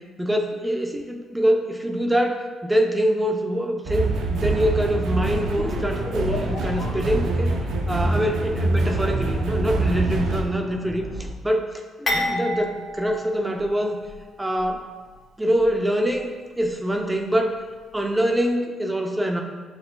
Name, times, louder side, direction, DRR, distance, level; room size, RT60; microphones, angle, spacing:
voice 1, 0.2-7.5 7.9-11.0 11.4-11.7 12.0-14.0 14.4-14.8 15.4-17.5 17.9-19.4, equal, 10° right, 2 dB, 0.4 m, -24 dB
sound 1, 3.8-10.4, right 2 dB, 80° right, 0.4 m, -25 dB
sound 2, 5.6-11.3, equal, 75° left, 0.9 m, -33 dB
sound 3, 12.1-14.2 14.6-14.7 15.6-15.8, left 1 dB, 50° left, 1.2 m, -29 dB
6.4 x 2.2 x 2.4 m, 1.3 s
cardioid pair, 90°, 0 cm